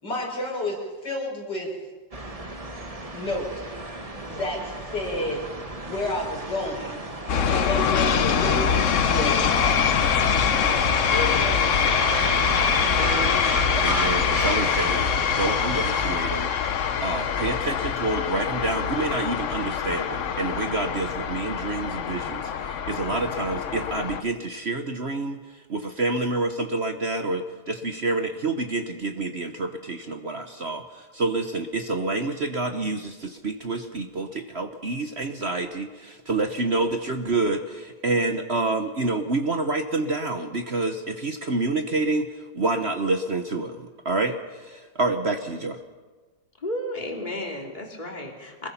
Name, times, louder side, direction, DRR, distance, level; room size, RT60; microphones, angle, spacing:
voice 1, 0.0-1.7 3.1-3.7 4.3-5.5 5.8-7.0 7.5-11.3, left 1 dB, 80° left, -1 dB, 6.1 m, -31 dB
sound 1, 2.1-16.2, right 1 dB, 20° right, 1.5 m, -32 dB
sound 2, 7.3-24.2, left 7 dB, 55° left, 1.0 m, -24 dB
voice 2, 12.9-13.8 46.6-48.7, left 1 dB, 25° left, 0 dB, 3.0 m, -33 dB
voice 3, 13.8-16.5 17.0-25.4 25.7-42.3 42.5-45.8, right 2 dB, 40° right, 6 dB, 1.2 m, -28 dB
26.0 x 20.5 x 5.7 m, 1.3 s
omnidirectional pair, 1.9 m